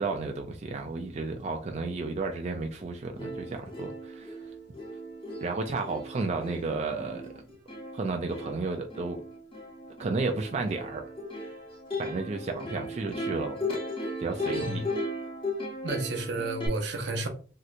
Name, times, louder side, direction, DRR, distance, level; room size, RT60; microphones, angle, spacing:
voice 1, 0.0-4.4 5.4-7.3 7.9-9.2 10.0-11.0 12.0-13.6 14.2-14.9, right 3 dB, 40° right, 0.4 m, -32 dB
Plucked string instrument, 2.8-2.9 3.2-16.7, left 1 dB, 30° left, 1.0 m, -37 dB
voice 2, 15.8-17.3, right 2 dB, 85° right, 0.7 m, -31 dB
3.2 x 2.9 x 2.4 m
head